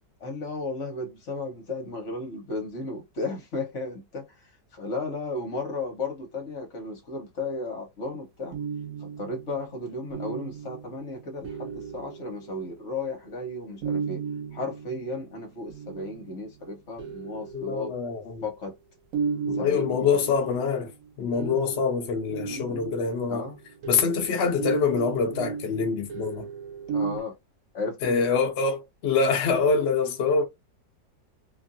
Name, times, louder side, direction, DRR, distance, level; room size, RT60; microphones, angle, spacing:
voice 1, 0.2-8.6 9.0-14.2 14.5-17.9 18.4-18.8 19.5-20.3 21.3-21.6 22.4-22.9 23.3-23.6 26.9-27.4 27.7-28.2, left 2 dB, 50° left, 1.2 m, -34 dB
sound 1, 8.5-13.1 13.8-16.4 17.0-18.4 19.1-27.2, right 6 dB, 60° right, 0.9 m, -35 dB
voice 2, 17.5-18.4 19.5-20.9 21.2-23.5 23.9-26.5 28.0-30.4, left 5 dB, 75° left, 0.6 m, -25 dB
2.9 x 2.5 x 2.5 m
omnidirectional pair, 1.9 m